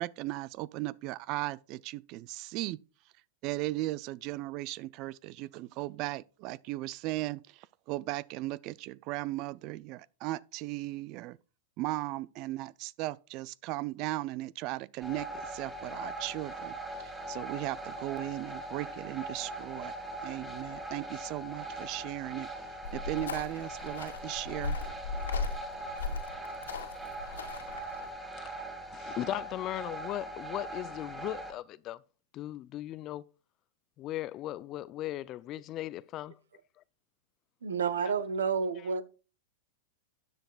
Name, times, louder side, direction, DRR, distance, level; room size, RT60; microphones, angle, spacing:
voice 1, 0.0-2.8 3.4-11.4 11.8-16.7 17.0-19.9 20.2-22.5 22.9-24.8, right 18 dB, 45° right, 0.3 m, -37 dB
sound 1, 15.0-31.5, right 1 dB, 5° right, 1.7 m, -41 dB
sound 2, 22.8-28.1, left 4 dB, 90° left, 2.1 m, -37 dB
voice 2, 28.4-32.0 32.3-33.3 34.0-36.4 38.0-38.1, left 14 dB, 35° left, 0.4 m, -38 dB
voice 3, 37.6-39.0, right 6 dB, 85° right, 0.9 m, -30 dB
13.0 x 7.9 x 2.3 m
hypercardioid pair, 115°, 0 cm